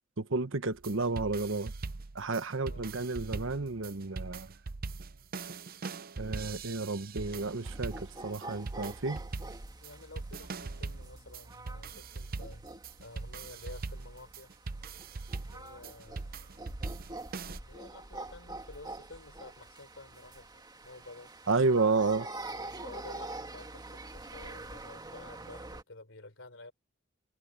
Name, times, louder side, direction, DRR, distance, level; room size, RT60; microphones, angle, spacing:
voice 1, 0.2-1.7 2.1-4.5 6.2-9.2 21.5-22.3, right 3 dB, 65° right, 1.1 m, -31 dB
sound 1, 0.7-17.6, right 3 dB, 45° right, 0.7 m, -41 dB
voice 2, 2.5-2.9 9.8-14.5 15.4-16.7 17.4-21.3 22.5-26.7, left 2 dB, 65° left, 3.6 m, -51 dB
sound 2, 7.3-25.8, right 2 dB, 20° right, 2.5 m, -46 dB
head